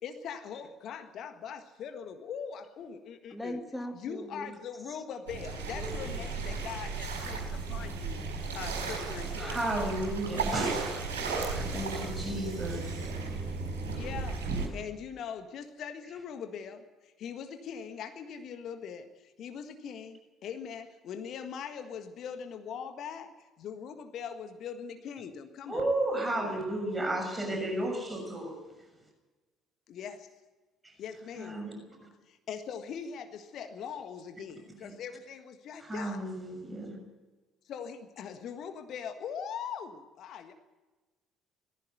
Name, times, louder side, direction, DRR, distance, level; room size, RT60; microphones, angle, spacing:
voice 1, 0.0-3.6 3.9-7.4 7.7-8.2 8.5-9.6 13.9-14.5 14.7-25.9 26.3-26.6 29.9-30.3 31.0-31.6 32.3-36.2 37.7-40.5, left 7 dB, 50° left, 8 dB, 1.6 m, -41 dB
voice 2, 3.3-4.5 5.7-6.3, left 1 dB, 10° left, 4 dB, 2.7 m, -40 dB
sound 1, 5.3-14.7, right 4 dB, 75° right, 4.4 m, -35 dB
voice 3, 9.4-10.9 11.5-13.1 25.7-28.6 30.8-30.9 31.4-31.7 32.0-32.1 34.8-34.9 35.8-37.0, right 1 dB, 15° right, 2 dB, 6.6 m, -33 dB
19.0 x 15.0 x 9.4 m, 1.2 s
figure-of-eight pair, 50°, 0 cm